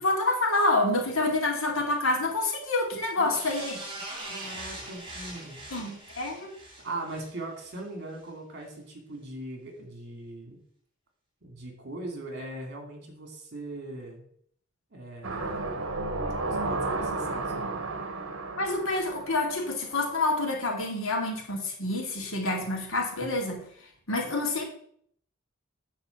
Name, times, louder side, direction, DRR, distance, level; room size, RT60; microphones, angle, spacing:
voice 1, 0.0-3.8 5.7-6.5 18.6-23.7 24.1-24.6, left 2 dB, 75° left, 1 dB, 2.2 m, -27 dB
voice 2, 3.1-4.0 4.2-5.6 6.4-6.5 6.8-10.6 11.4-14.2 14.9-16.0 16.4-17.9, right 2 dB, 55° right, 2 dB, 2.3 m, -40 dB
sound 1, 3.3-7.8 8.2-8.3, right 1 dB, 25° right, 2.5 m, -42 dB
sound 2, 15.2-20.1 20.5-20.6, right 3 dB, 70° right, 1.1 m, -33 dB
9.2 x 3.7 x 7.0 m, 0.63 s
head